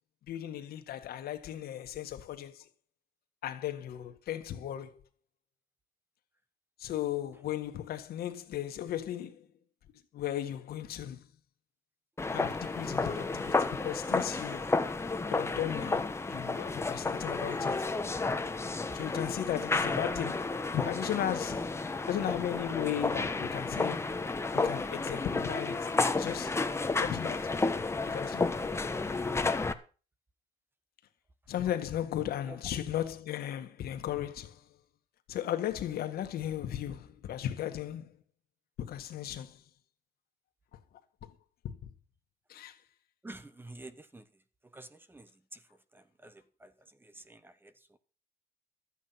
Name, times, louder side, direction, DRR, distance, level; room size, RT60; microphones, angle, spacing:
voice 1, 0.3-2.6 3.4-5.0 6.8-9.4 10.1-11.2 12.3-14.6 15.3-17.9 18.9-21.8 22.1-24.2 24.5-25.9 26.1-26.6 27.0-27.5 28.1-28.7 31.5-34.6 35.3-38.1 38.8-39.6 41.2-41.3 41.6-41.8 42.5-42.8, left 11 dB, 65° left, 1.9 m, -36 dB
sound 1, 12.2-29.7, left 3 dB, 15° left, 1.1 m, -32 dB
voice 2, 43.2-44.2 44.6-45.6 45.9-48.0, right 2 dB, 10° right, 1.2 m, -50 dB
13.0 x 8.8 x 5.9 m
cardioid pair, 110°, 17 cm